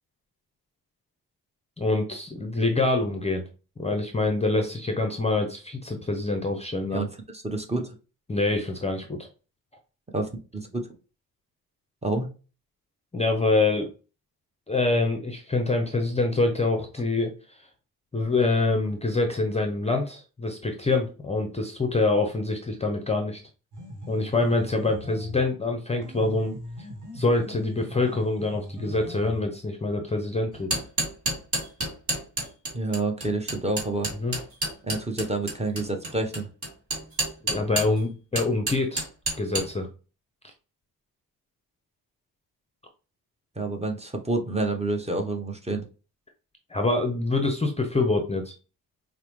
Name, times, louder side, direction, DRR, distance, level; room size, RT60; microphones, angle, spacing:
voice 1, 1.8-3.5 3.8-7.1 8.3-9.3 13.1-13.9 14.7-17.3 18.1-23.4 24.1-26.5 27.1-30.8 34.2-34.4 37.4-39.1 39.4-39.9 46.7-48.5, left 2 dB, 15° left, 4 dB, 0.6 m, -25 dB
voice 2, 7.3-7.9 10.1-10.9 12.0-12.3 32.7-34.1 34.8-36.5 43.6-45.8, right 2 dB, 15° right, 4 dB, 0.8 m, -28 dB
sound 1, 23.7-25.5 26.0-29.5, left 1 dB, 55° right, 1.2 m, -40 dB
sound 2, 30.5-38.0 38.4-39.7, right 1 dB, 35° right, 2.1 m, -29 dB
4.7 x 2.1 x 3.0 m, 0.34 s
cardioid pair, 80°, 37 cm